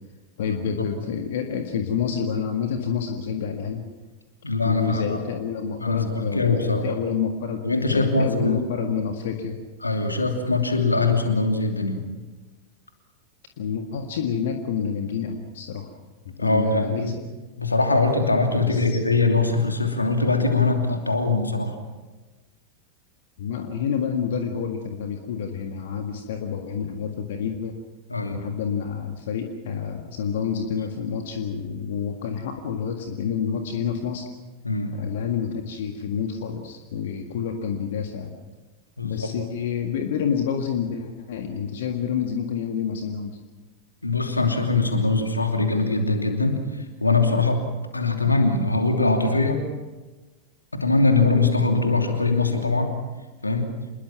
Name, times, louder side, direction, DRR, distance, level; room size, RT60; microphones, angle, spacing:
voice 1, 0.4-3.9 4.6-9.6 13.6-15.9 16.4-17.0 18.5-19.0 23.4-27.8 28.3-34.3 34.9-38.3 39.0-43.4, left 7 dB, 55° left, 4 dB, 1.8 m, -28 dB
voice 2, 4.4-5.2 5.8-6.9 7.6-8.6 9.8-12.0 16.4-17.1 17.6-21.8 28.1-28.4 34.6-34.9 39.0-39.3 44.0-47.6 47.9-49.6 50.7-52.9 53.4-53.7, left 3 dB, 80° left, 4 dB, 2.9 m, -22 dB
27.0 x 21.5 x 6.0 m, 1.2 s
figure-of-eight pair, 90°, 0 cm